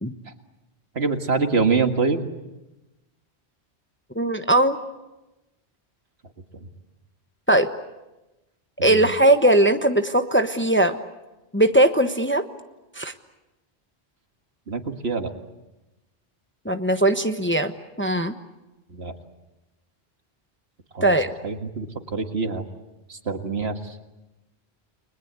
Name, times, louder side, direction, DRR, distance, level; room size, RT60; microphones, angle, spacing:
voice 1, 1.0-2.3 6.5-6.7 8.8-9.1 14.7-15.3 18.9-19.1 20.9-21.2 21.4-22.6 23.1-24.1, right 4 dB, 70° right, 6 dB, 2.1 m, -25 dB
voice 2, 4.1-4.8 7.5-7.7 8.8-11.0 11.5-12.4 13.0-13.1 16.6-17.7 18.0-18.3 21.0-21.3, right 1 dB, 10° left, 7 dB, 1.0 m, -19 dB
30.0 x 22.0 x 8.1 m, 1.0 s
omnidirectional pair, 1.1 m